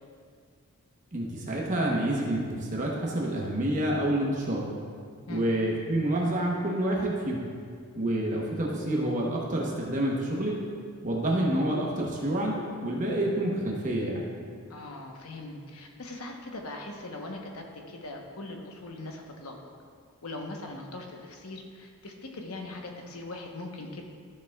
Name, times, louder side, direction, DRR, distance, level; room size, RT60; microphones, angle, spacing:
voice 1, 1.1-4.7 5.3-7.4 8.0-10.6 11.0-14.3, right 1 dB, 35° right, -2 dB, 0.9 m, -28 dB
voice 2, 14.7-19.6 20.2-24.0, left 2 dB, 80° left, 1 dB, 1.0 m, -40 dB
13.5 x 6.8 x 2.4 m, 2.1 s
head